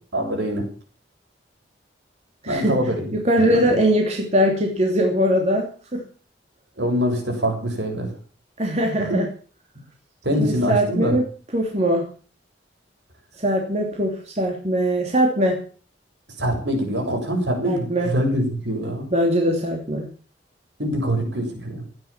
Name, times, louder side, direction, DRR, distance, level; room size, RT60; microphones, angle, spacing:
voice 1, 0.1-0.6 2.5-3.1 3.4-3.7 6.8-8.1 9.1-9.2 10.2-11.1 16.4-19.1 20.8-21.8, equal, 70° right, 3 dB, 7.4 m, -24 dB
voice 2, 2.4-2.8 3.1-6.0 8.6-9.3 10.4-11.2 11.5-12.1 13.4-15.6 17.6-18.1 19.1-20.1, equal, 35° right, 1 dB, 3.0 m, -21 dB
16.0 x 9.8 x 7.5 m, 0.41 s
head